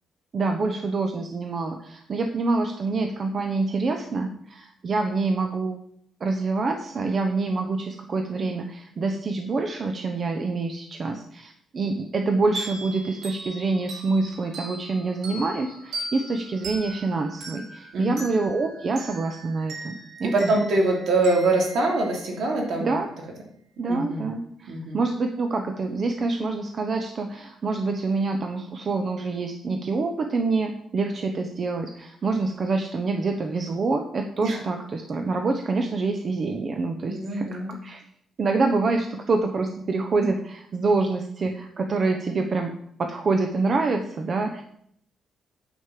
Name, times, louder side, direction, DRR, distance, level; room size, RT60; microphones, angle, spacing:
voice 1, 0.3-5.8 6.2-20.5 22.8-23.1 23.8-38.0 38.4-42.7 43.0-44.6, right 3 dB, 40° right, 4 dB, 0.8 m, -26 dB
sound 1, 12.6-22.8, right 2 dB, 85° right, 4.5 m, -40 dB
voice 2, 20.3-22.9 23.9-24.3 24.7-25.0 34.4-34.6 37.1-37.7, right 2 dB, 70° right, 0 dB, 3.0 m, -24 dB
9.7 x 5.3 x 7.5 m, 0.70 s
cardioid pair, 140°, 0 cm